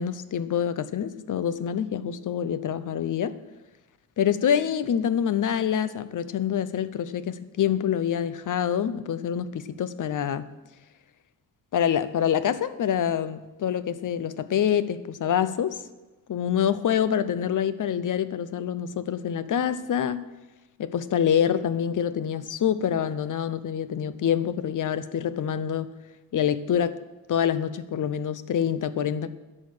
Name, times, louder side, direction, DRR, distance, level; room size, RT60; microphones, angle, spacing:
voice 1, 0.0-3.4 4.2-10.5 11.7-15.8 16.3-20.2 20.8-25.9 26.3-27.0 27.3-29.3, left 9 dB, 60° left, 14 dB, 0.7 m, -26 dB
11.0 x 6.5 x 8.6 m, 1.2 s
wide cardioid pair, 125°, 36 cm